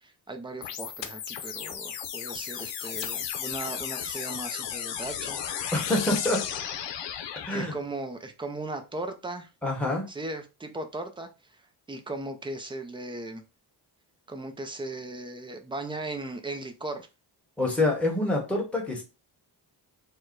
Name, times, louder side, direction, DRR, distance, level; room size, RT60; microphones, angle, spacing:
voice 1, 0.0-5.4 7.5-9.5 10.1-11.6 11.9-13.4 14.3-17.1, right 2 dB, 10° right, 6 dB, 0.4 m, -37 dB
sound 1, 0.6-7.6, left 9 dB, 85° left, 0.8 m, -34 dB
voice 2, 5.7-6.5 7.4-7.7 9.6-10.0 17.6-19.0, left 2 dB, 5° left, -1 dB, 1.1 m, -26 dB
4.6 x 2.2 x 4.5 m, 0.28 s
wide cardioid pair, 180°, 42 cm